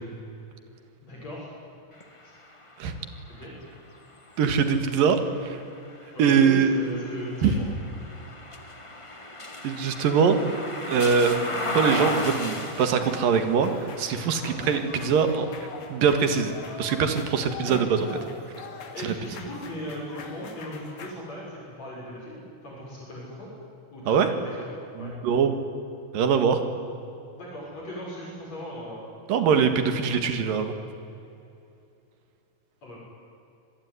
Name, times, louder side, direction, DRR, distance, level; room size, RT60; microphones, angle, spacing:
voice 1, 1.0-1.5 2.2-2.3 3.3-3.5 6.1-7.5 14.3-14.6 17.6-18.2 18.7-23.5 23.9-24.7 25.0-25.1 27.4-29.1 29.5-29.6 32.8-33.0, equal, 50° left, -5 dB, 8.0 m, -38 dB
sound 1, 1.9-17.9 18.4-19.6, left 2 dB, 25° left, 0.6 m, -37 dB
voice 2, 4.4-5.6 6.2-6.7 7.4-7.5 9.6-10.4 10.9-13.7 14.0-15.5 15.9-18.1 19.0-19.1 24.1-24.3 25.0-25.6 26.1-26.6 29.3-30.8, right 6 dB, 85° right, 8 dB, 3.6 m, -23 dB
sound 2, 11.6-21.1, left 4 dB, 70° left, 3.8 m, -43 dB
27.0 x 20.0 x 9.8 m, 2.7 s
omnidirectional pair, 3.9 m